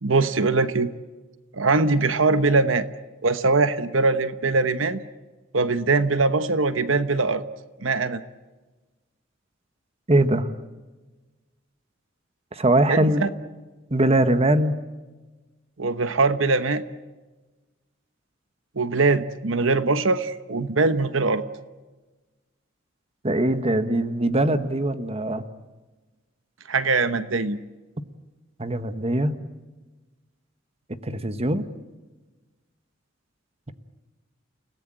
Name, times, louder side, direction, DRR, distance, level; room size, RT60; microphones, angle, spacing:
voice 1, 0.0-0.9 1.6-2.9 3.2-5.0 5.5-7.4 7.8-8.2 12.9-13.3 15.8-16.8 18.8-21.4 26.7-27.6, right 3 dB, 80° right, 12 dB, 1.1 m, -22 dB
voice 2, 10.1-10.5 12.5-13.3 13.9-14.8 23.2-25.5 28.6-29.4 31.0-31.7, right 1 dB, 30° right, 11 dB, 1.3 m, -21 dB
30.0 x 18.0 x 8.8 m, 1.2 s
head